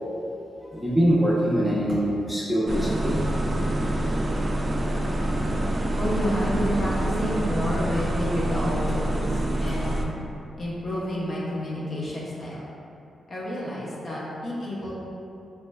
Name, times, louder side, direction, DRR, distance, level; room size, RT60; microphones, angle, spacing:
voice 1, 0.7-3.2 7.9-8.0, equal, ahead, -7 dB, 0.7 m, -23 dB
sound 1, 2.7-10.1, right 1 dB, 35° right, 0.3 m, -26 dB
voice 2, 6.0-10.0 10.6-12.7 13.3-14.9, equal, 50° left, -7 dB, 0.7 m, -30 dB
3.2 x 3.0 x 2.2 m, 2.8 s
cardioid pair, 60°, 0 cm